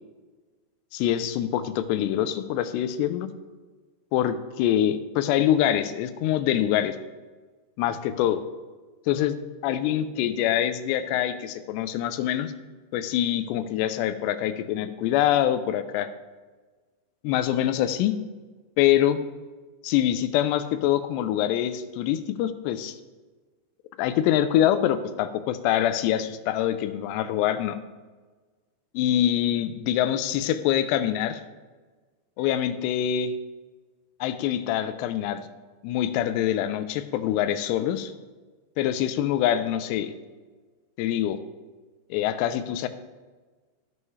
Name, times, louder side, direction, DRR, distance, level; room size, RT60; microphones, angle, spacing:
voice 1, 0.9-3.3 4.1-7.0 7.8-8.4 9.1-9.4 9.6-12.5 12.9-16.1 17.2-18.1 18.8-19.2 19.8-23.0 24.0-27.8 29.0-31.4 32.4-33.3 34.2-35.5 35.8-38.1 38.8-40.1 41.0-41.4 42.1-42.9, left 11 dB, 90° left, 11 dB, 2.8 m, -25 dB
14.5 x 5.5 x 3.2 m, 1.3 s
omnidirectional pair, 4.9 m